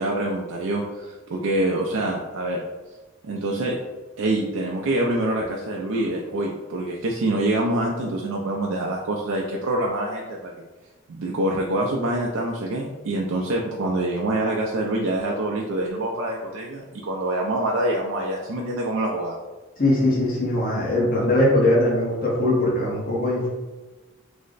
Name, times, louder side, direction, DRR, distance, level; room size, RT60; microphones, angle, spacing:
voice 1, 0.0-2.6 3.2-3.8 4.2-10.5 11.1-19.4, right 1 dB, 75° right, -1 dB, 0.4 m, -25 dB
voice 2, 19.8-23.5, left 1 dB, 45° left, -5 dB, 0.9 m, -21 dB
3.2 x 2.1 x 3.8 m, 1.2 s
head